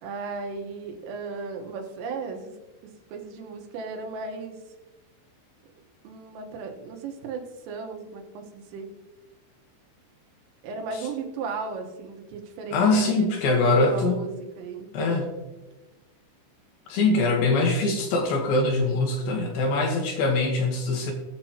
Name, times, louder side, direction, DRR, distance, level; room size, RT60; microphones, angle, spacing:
voice 1, 0.0-2.5 2.8-4.6 6.0-8.9 10.6-14.9, right 4 dB, 90° right, 3 dB, 3.9 m, -35 dB
voice 2, 12.7-14.2 14.9-15.3 16.9-21.1, left 3 dB, 70° left, 2 dB, 2.4 m, -23 dB
20.0 x 7.4 x 2.9 m, 1.1 s
omnidirectional pair, 5.6 m